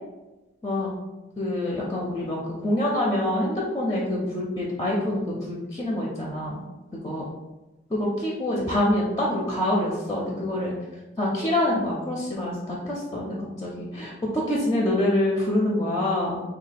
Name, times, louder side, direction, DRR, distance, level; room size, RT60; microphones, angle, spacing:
voice 1, 1.4-2.4 2.6-6.6 7.0-7.2 7.9-10.7 11.2-13.3 13.6-16.4, left 1 dB, 20° left, -3 dB, 0.4 m, -26 dB
3.0 x 2.3 x 4.1 m, 1.1 s
head